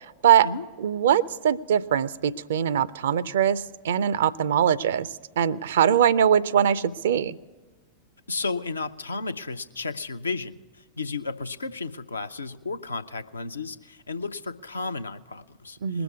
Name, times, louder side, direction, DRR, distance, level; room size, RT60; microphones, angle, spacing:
voice 1, 0.0-0.5 0.8-7.4 15.8-16.0, right 9 dB, 60° right, 18 dB, 0.4 m, -22 dB
voice 2, 8.3-16.0, left 3 dB, 75° left, 10 dB, 0.5 m, -33 dB
20.0 x 7.0 x 9.5 m, 1.3 s
figure-of-eight pair, 90°, 0 cm